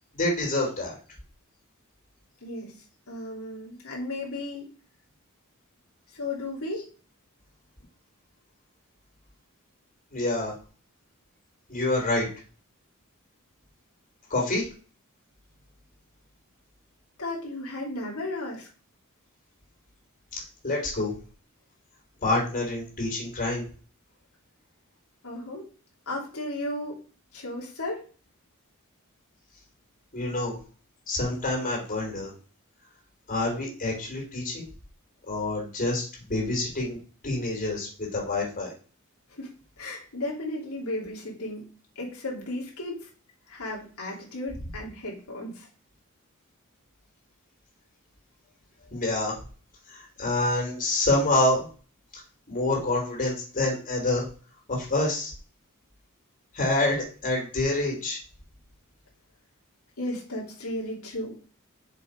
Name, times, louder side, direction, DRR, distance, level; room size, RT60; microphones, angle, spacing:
voice 1, 0.1-1.0 10.1-10.5 11.7-12.3 14.3-14.7 20.6-21.1 22.2-23.6 30.1-30.5 31.1-32.3 33.3-34.6 35.3-37.0 37.2-38.7 48.9-49.4 49.9-51.6 52.5-54.3 54.7-55.3 56.5-58.2, left 2 dB, 40° left, -3 dB, 3.7 m, -27 dB
voice 2, 2.4-4.7 6.1-6.9 17.2-18.7 25.2-25.7 26.1-27.0 27.3-28.0 39.3-43.1 43.5-45.7 60.0-61.4, left 1 dB, 90° left, -3 dB, 2.9 m, -35 dB
6.7 x 5.6 x 5.1 m, 0.39 s
head